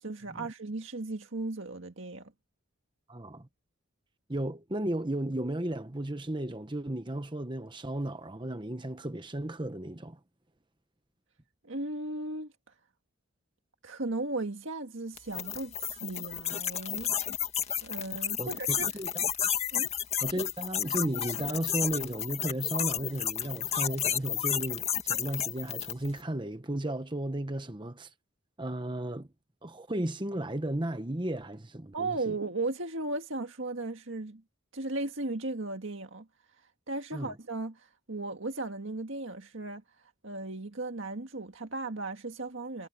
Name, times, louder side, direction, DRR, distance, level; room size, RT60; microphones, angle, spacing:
voice 1, 0.0-2.3 11.6-12.5 13.8-17.1 17.8-18.9 19.7-19.9 31.9-34.4 34.7-36.3 36.9-42.9, right 2 dB, 65° right, 1.9 m, -36 dB
voice 2, 3.1-3.5 4.3-10.2 18.4-19.1 19.4-19.5 20.2-28.1 28.6-29.3 29.6-32.3 37.1-37.3, right 1 dB, 20° right, 1.0 m, -34 dB
sound 1, 15.2-26.1, left 9 dB, 30° left, 2.2 m, -32 dB
head